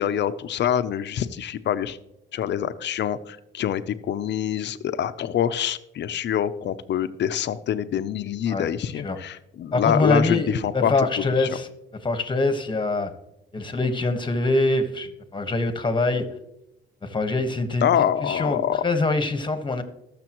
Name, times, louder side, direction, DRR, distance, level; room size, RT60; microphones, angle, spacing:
voice 1, 0.0-2.0 2.3-11.6 17.8-18.8, left 9 dB, 60° left, 12 dB, 0.7 m, -25 dB
voice 2, 9.7-11.7 12.0-13.1 13.5-16.2 17.0-19.8, left 2 dB, 25° left, 8 dB, 1.4 m, -24 dB
20.0 x 6.8 x 3.1 m, 0.86 s
cardioid pair, 90°, 20 cm